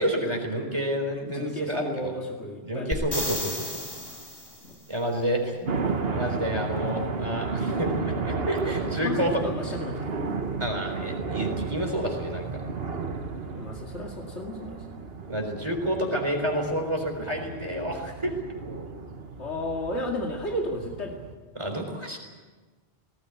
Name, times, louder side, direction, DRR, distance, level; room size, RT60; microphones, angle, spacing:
voice 1, 0.0-2.1 2.6-3.8 4.9-5.6 6.1-9.4 10.6-12.6 15.3-18.3 21.5-22.2, equal, 25° right, 2 dB, 4.1 m, -29 dB
voice 2, 1.0-2.9 4.6-4.8 5.4-5.9 8.7-10.2 13.5-14.8 19.4-21.2, left 1 dB, 90° left, 0 dB, 2.6 m, -34 dB
sound 1, 2.9-4.8 8.6-8.7, left 1 dB, 20° left, 3.0 m, -33 dB
sound 2, 5.7-21.3, right 4 dB, 65° right, 1.6 m, -33 dB
19.0 x 18.5 x 9.5 m, 1.3 s
omnidirectional pair, 1.1 m